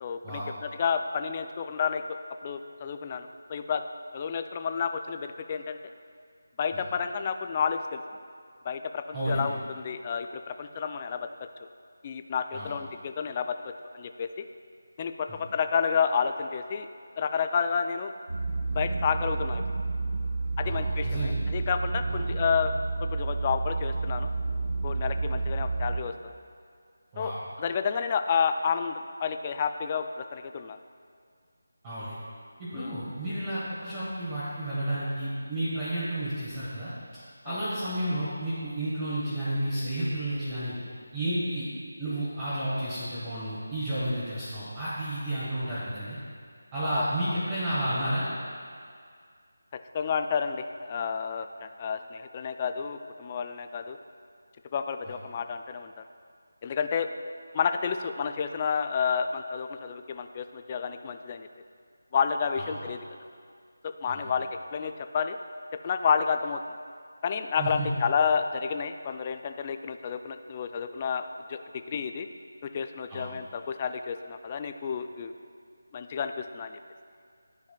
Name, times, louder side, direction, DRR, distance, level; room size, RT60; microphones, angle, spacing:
voice 1, 0.0-2.0 2.4-3.8 4.1-5.8 6.6-8.0 8.7-11.2 12.0-13.5 13.9-14.4 15.0-15.1 15.5-16.9 17.2-18.1 18.7-19.6 20.6-22.7 23.0-24.3 24.8-26.1 27.2-27.3 27.6-30.8 32.7-32.9 37.5-37.6 46.9-47.1 49.9-54.0 54.7-55.9 56.6-57.1 57.5-61.5 62.1-63.0 64.0-65.4 65.8-66.6 67.2-71.6 71.9-72.3 72.7-75.3 75.9-76.8, left 6 dB, 25° left, 7 dB, 0.3 m, -30 dB
voice 2, 9.1-9.4 12.5-12.7 15.3-15.4 20.6-21.4 22.1-22.2 27.1-27.4 31.8-32.2 32.6-36.9 37.4-40.8 41.1-41.7 42.0-46.2 46.7-48.3 55.0-55.1 62.6-62.7 64.1-64.3 67.6-67.9 73.1-73.3, right 1 dB, 20° right, -12 dB, 1.6 m, -31 dB
sound 1, 18.3-26.0, right 3 dB, 85° right, 0.9 m, -30 dB
13.0 x 4.8 x 2.3 m, 2.2 s
figure-of-eight pair, 165°, 0 cm